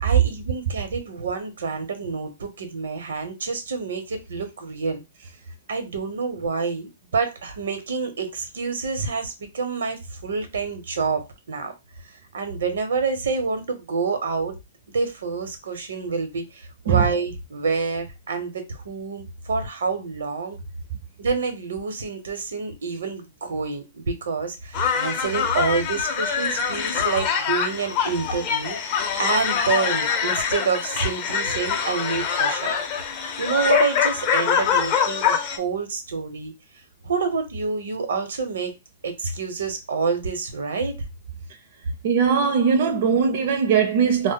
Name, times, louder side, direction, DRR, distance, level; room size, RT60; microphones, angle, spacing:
voice 1, 0.0-5.0 5.7-11.7 12.3-14.6 14.9-20.6 21.2-32.8 33.4-36.5 37.0-38.7 39.0-41.0, right 4 dB, 85° right, 0.8 m, -28 dB
sound 1, 24.7-35.6, left 7 dB, 30° left, 0.4 m, -24 dB
voice 2, 42.0-44.3, right 6 dB, 45° right, 0.4 m, -20 dB
2.1 x 2.1 x 3.7 m
hypercardioid pair, 165°, 0 cm